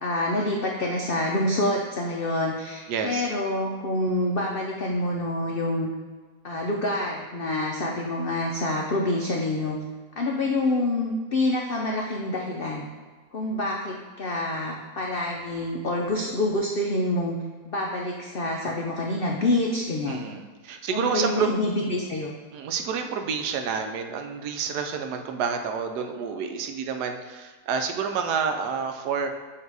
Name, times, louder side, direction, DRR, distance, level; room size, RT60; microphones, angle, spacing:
voice 1, 0.0-5.9 6.4-9.8 10.2-12.9 13.3-17.4 17.7-20.2 20.9-22.3, left 1 dB, 80° left, 0 dB, 0.5 m, -27 dB
voice 2, 2.9-3.3 20.1-21.5 22.5-29.3, right 6 dB, 85° right, 6 dB, 1.2 m, -29 dB
7.4 x 2.8 x 4.7 m, 1.4 s
omnidirectional pair, 1.7 m